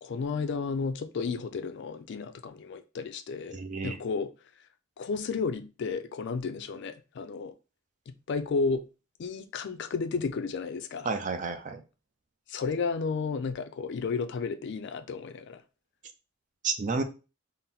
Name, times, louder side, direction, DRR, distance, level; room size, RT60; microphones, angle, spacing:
voice 1, 0.0-3.6 3.8-4.3 5.0-7.5 8.1-8.9 9.2-11.1 12.5-15.6, left 4 dB, 55° left, 0.4 m, -32 dB
voice 2, 3.5-4.0 11.1-11.8 16.6-17.0, right 4 dB, 35° right, 0.5 m, -31 dB
3.8 x 2.0 x 4.1 m
head